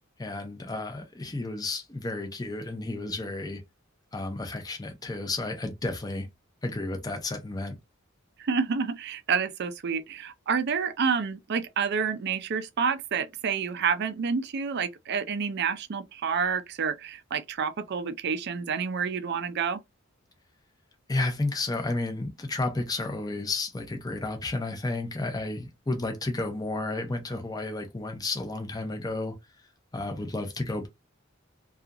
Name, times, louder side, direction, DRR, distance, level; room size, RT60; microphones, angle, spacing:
voice 1, 0.2-3.6 4.1-6.3 6.6-7.8 21.1-29.4 29.9-30.9, left 2 dB, 20° left, 0.6 m, -32 dB
voice 2, 8.4-19.8, right 6 dB, 55° right, 0.4 m, -29 dB
2.8 x 2.4 x 2.3 m
head